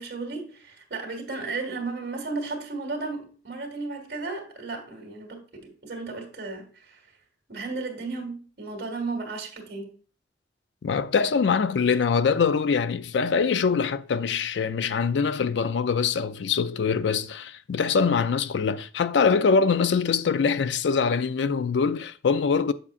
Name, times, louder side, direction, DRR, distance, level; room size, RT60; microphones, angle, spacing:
voice 1, 0.0-7.0 7.5-9.9, right 3 dB, 65° right, 2.0 m, -34 dB
voice 2, 10.8-22.7, left 5 dB, 85° left, 0.4 m, -23 dB
7.1 x 7.0 x 2.4 m
head